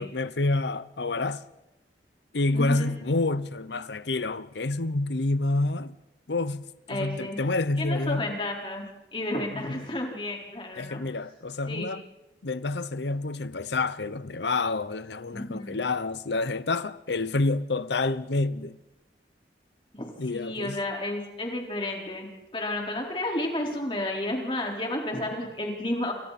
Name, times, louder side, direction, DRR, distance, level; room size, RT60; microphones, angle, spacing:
voice 1, 0.0-1.4 2.3-5.9 6.3-8.3 9.5-9.8 10.7-12.0 12.4-18.8 20.2-20.8, left 2 dB, 80° left, 0.9 m, -28 dB
voice 2, 2.5-2.9 6.9-7.4 7.8-8.8 9.1-11.0 11.7-12.0 15.3-15.7 19.9-22.3 22.5-26.1, left 1 dB, 30° left, 4.5 m, -31 dB
29.5 x 27.0 x 4.3 m
head